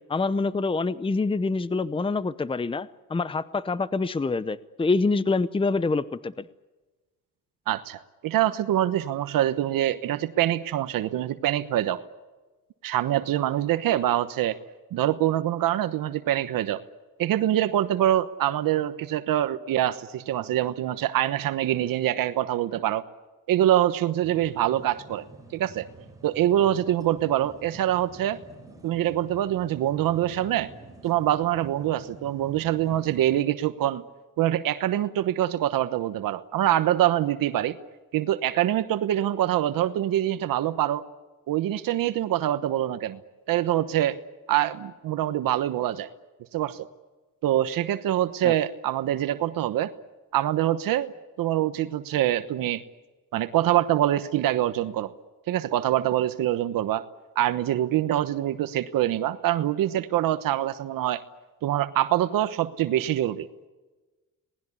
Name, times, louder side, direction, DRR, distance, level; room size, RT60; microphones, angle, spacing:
voice 1, 0.1-6.5 48.4-48.5, left 3 dB, 15° left, 16 dB, 0.8 m, -26 dB
voice 2, 7.7-12.0 12.8-14.6 14.9-16.8 17.2-23.0 23.5-25.2 25.5-25.9 26.2-28.4 28.8-30.7 31.0-34.0 34.4-37.7 38.1-41.0 41.5-43.2 43.5-44.2 44.5-46.1 46.5-46.9 47.4-49.9 50.3-51.1 51.4-52.8 53.3-55.1 55.5-57.0 57.4-61.2 61.6-63.7, right 12 dB, 85° right, 11 dB, 1.1 m, -25 dB
sound 1, 24.2-33.4, right 3 dB, 10° right, 5.3 m, -48 dB
27.0 x 19.0 x 8.4 m, 1.2 s
cardioid pair, 100°, 33 cm